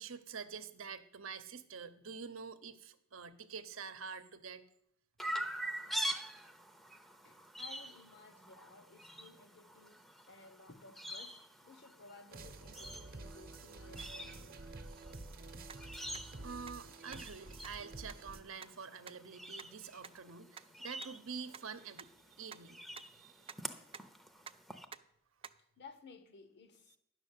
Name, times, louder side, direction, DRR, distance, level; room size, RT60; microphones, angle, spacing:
voice 1, 0.0-4.6 16.2-23.6, right 5 dB, 75° right, 0.8 m, -47 dB
Chirp tweet, 5.2-24.8, right 1 dB, ahead, 0.7 m, -46 dB
voice 2, 7.2-14.8 25.8-27.0, left 3 dB, 55° left, 1.1 m, -57 dB
sound 1, 12.3-18.4, right 2 dB, 45° right, 0.9 m, -50 dB
sound 2, 15.7-15.8 16.1-16.2 16.7-16.8 17.1-17.2 17.6-17.7 18.1-18.2 18.6-18.7 19.1-19.2 19.6-19.7 20.0-20.1 20.6-20.7 21.0-21.1 21.5-21.6 22.0-22.1 22.5-22.6 23.0-23.1 23.5-23.6 23.9-24.1 24.5-24.6 24.9-25.0 25.4-25.5, right 6 dB, 30° right, 0.4 m, -48 dB
10.5 x 6.3 x 8.2 m
head